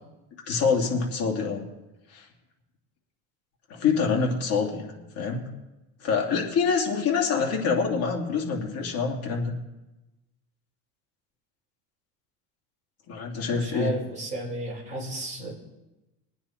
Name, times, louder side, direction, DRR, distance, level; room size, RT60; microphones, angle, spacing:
voice 1, 0.5-1.7 2.1-2.2 3.7-4.9 5.1-5.5 6.0-9.6 13.1-13.9, left 5 dB, 45° left, -1 dB, 2.8 m, -26 dB
voice 2, 13.5-15.5, right 1 dB, 20° right, -3 dB, 4.7 m, -33 dB
21.5 x 9.3 x 4.5 m, 1.0 s
cardioid pair, 155°, 34 cm